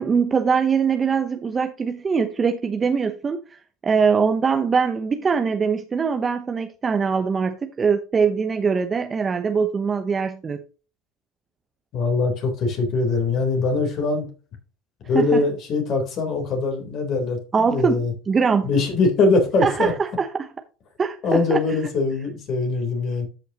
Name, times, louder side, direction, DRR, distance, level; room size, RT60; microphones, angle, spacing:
voice 1, 0.0-10.6 15.1-15.4 17.5-18.7 19.6-20.5 21.0-21.6, right 5 dB, 30° right, 0.9 m, -22 dB
voice 2, 11.9-14.3 15.1-18.1 18.6-19.9 21.2-23.3, left 3 dB, 50° left, 3.7 m, -22 dB
13.0 x 5.7 x 3.0 m
hypercardioid pair, 80°, 0 cm